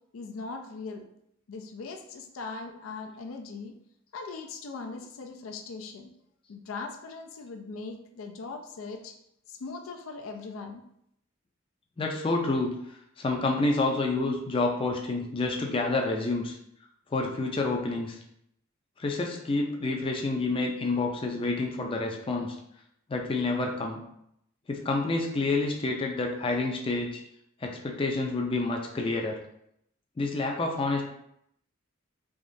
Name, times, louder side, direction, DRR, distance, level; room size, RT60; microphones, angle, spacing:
voice 1, 0.1-1.1 1.5-3.8 4.1-6.1 6.5-9.1 9.5-10.8, left 4 dB, 90° left, 5 dB, 0.4 m, -40 dB
voice 2, 12.0-16.6 17.1-18.2 19.0-22.6 23.1-24.0 24.7-27.1 27.6-29.4 30.2-31.0, left 3 dB, 25° left, 1 dB, 0.4 m, -28 dB
3.5 x 2.9 x 2.6 m, 0.75 s
head